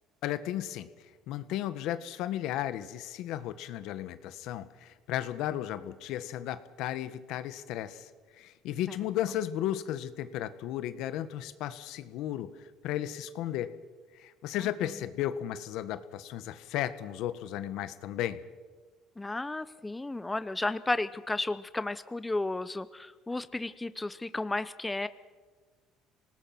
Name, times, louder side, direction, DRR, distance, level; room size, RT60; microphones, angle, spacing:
voice 1, 0.2-0.9 1.3-8.1 8.4-13.8 14.1-18.4, left 12 dB, 75° left, 12 dB, 1.4 m, -34 dB
voice 2, 19.2-25.1, left 2 dB, 10° left, 14 dB, 0.8 m, -33 dB
26.5 x 19.0 x 6.0 m, 1.4 s
cardioid pair, 115°, 0 cm